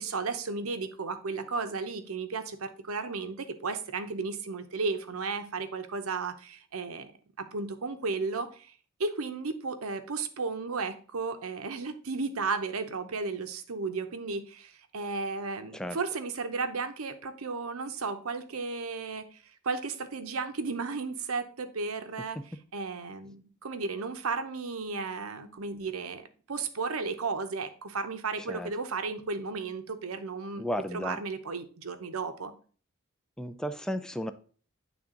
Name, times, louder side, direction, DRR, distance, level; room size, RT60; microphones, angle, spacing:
voice 1, 0.0-7.1 7.5-8.7 9.0-19.4 19.6-22.4 22.7-30.6 30.9-32.5, right 4 dB, 75° right, 8 dB, 0.8 m, -34 dB
voice 2, 28.4-28.7 30.6-31.2 33.4-34.3, equal, 5° left, 10 dB, 0.4 m, -34 dB
8.9 x 3.5 x 3.7 m, 0.41 s
head